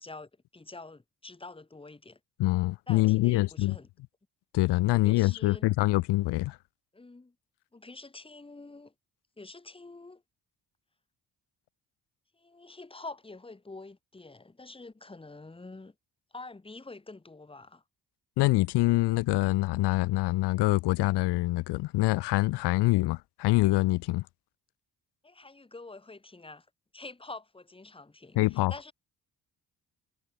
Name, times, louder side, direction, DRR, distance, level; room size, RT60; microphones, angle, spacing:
voice 1, 0.0-2.2 2.9-3.9 4.9-5.7 6.9-7.3 7.7-8.9 9.4-10.2 12.3-15.9 16.3-17.8 25.2-26.7 26.9-28.9, left 3 dB, 15° left, 1.3 m, -46 dB
voice 2, 2.4-3.8 4.5-6.6 18.4-24.2 28.4-28.7, left 19 dB, 85° left, 0.5 m, -25 dB
cardioid pair, 90°, 40 cm